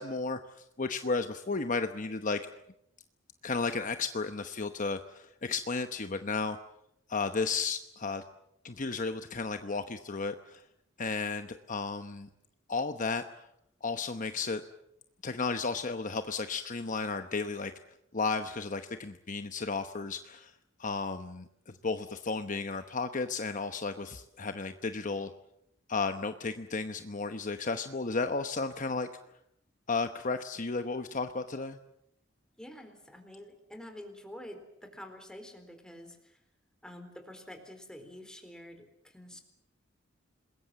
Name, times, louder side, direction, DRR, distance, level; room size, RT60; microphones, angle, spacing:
voice 1, 0.0-2.4 3.4-6.6 7.1-8.2 8.6-10.6 11.0-12.3 12.7-13.5 13.8-14.6 15.2-17.7 18.1-20.5 20.8-25.3 25.9-29.1 29.9-31.8, left 4 dB, 40° left, 8 dB, 1.0 m, -33 dB
voice 2, 32.6-36.4 36.8-39.4, left 1 dB, 5° left, 6 dB, 4.2 m, -48 dB
27.5 x 21.0 x 7.7 m, 0.79 s
head